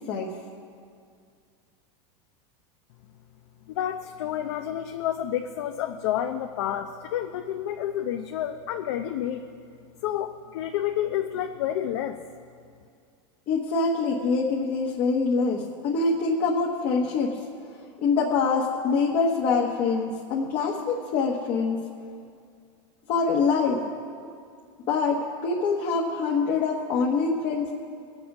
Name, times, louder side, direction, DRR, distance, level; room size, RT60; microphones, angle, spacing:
voice 1, 3.7-9.4 10.0-12.2, left 11 dB, 60° left, 6 dB, 0.7 m, -29 dB
voice 2, 13.5-21.8 23.1-23.8 24.9-27.7, left 4 dB, 35° left, -1 dB, 1.1 m, -25 dB
21.0 x 7.8 x 6.0 m, 2.3 s
supercardioid pair, 175°, 16 cm